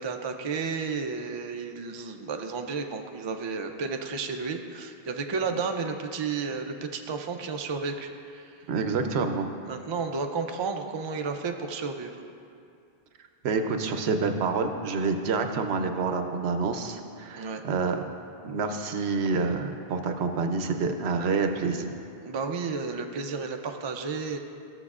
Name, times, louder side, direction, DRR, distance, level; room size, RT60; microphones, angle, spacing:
voice 1, 0.0-8.6 9.6-12.2 17.4-17.6 22.2-24.4, right 4 dB, 45° right, 5 dB, 0.3 m, -32 dB
voice 2, 8.7-9.5 13.4-18.0 18.4-21.9, right 4 dB, 80° right, 6 dB, 0.9 m, -27 dB
14.0 x 7.0 x 2.4 m, 2.4 s
omnidirectional pair, 1.1 m